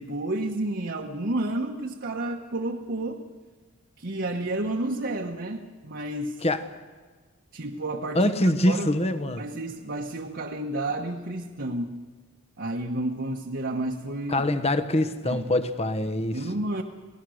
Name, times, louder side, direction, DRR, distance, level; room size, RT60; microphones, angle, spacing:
voice 1, 0.0-3.2 4.0-6.4 7.5-8.9 9.4-12.0 12.6-14.5 15.2-15.6 16.3-16.8, right 1 dB, 55° right, 1.2 m, -31 dB
voice 2, 8.1-9.4 14.3-16.4, left 1 dB, 30° left, 1.1 m, -24 dB
28.0 x 18.0 x 6.4 m
head